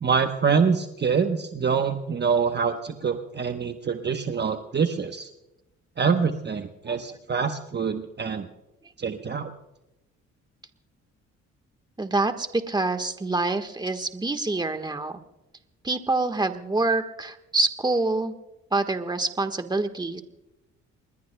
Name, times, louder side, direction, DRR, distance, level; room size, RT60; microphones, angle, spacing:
voice 1, 0.0-5.3 6.0-8.5 9.0-9.5, right 6 dB, 35° right, 6 dB, 1.0 m, -25 dB
voice 2, 12.0-15.2 15.8-18.3 18.7-20.2, right 2 dB, 15° right, 7 dB, 1.4 m, -26 dB
29.0 x 20.5 x 2.3 m, 0.93 s
cardioid pair, 90°, 30 cm